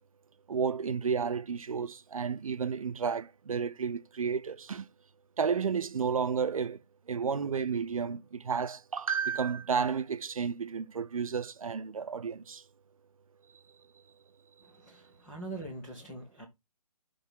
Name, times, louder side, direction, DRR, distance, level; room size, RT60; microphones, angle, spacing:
voice 1, 0.5-4.9 5.4-6.8 7.1-12.6, right 6 dB, 55° right, 0.7 m, -32 dB
voice 2, 14.6-16.4, right 2 dB, 5° left, 0.4 m, -43 dB
6.2 x 3.4 x 5.4 m
figure-of-eight pair, 155°, 20 cm